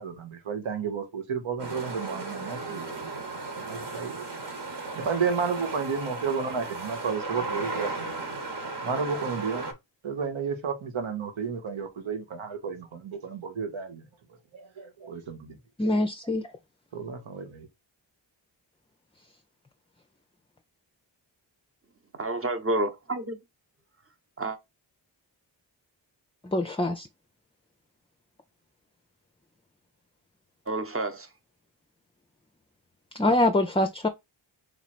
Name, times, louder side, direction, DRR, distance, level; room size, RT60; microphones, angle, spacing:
voice 1, 0.0-3.3 3.6-4.3 4.9-8.2 8.8-9.7 10.0-14.0 14.5-15.6 16.9-17.7, right 5 dB, 90° right, 1.0 m, -32 dB
sound 1, 1.6-9.7, right 3 dB, 60° right, 1.3 m, -35 dB
voice 2, 15.8-16.4 26.4-27.1 33.2-34.1, left 1 dB, 10° left, 0.5 m, -24 dB
voice 3, 22.2-23.4 24.4-24.6 30.7-31.3, right 2 dB, 30° right, 1.0 m, -29 dB
3.2 x 3.0 x 4.2 m
cardioid pair, 45°, 47 cm